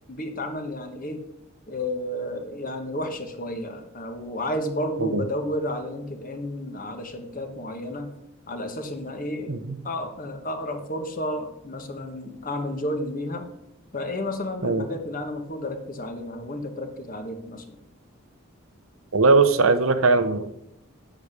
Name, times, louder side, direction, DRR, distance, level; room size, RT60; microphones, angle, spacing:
voice 1, 0.1-1.2 1.7-8.1 8.5-13.5 13.9-17.8, left 1 dB, 40° left, 6 dB, 1.6 m, -32 dB
voice 2, 19.1-20.5, right 3 dB, 80° right, 11 dB, 0.9 m, -20 dB
8.5 x 8.4 x 6.8 m, 0.80 s
head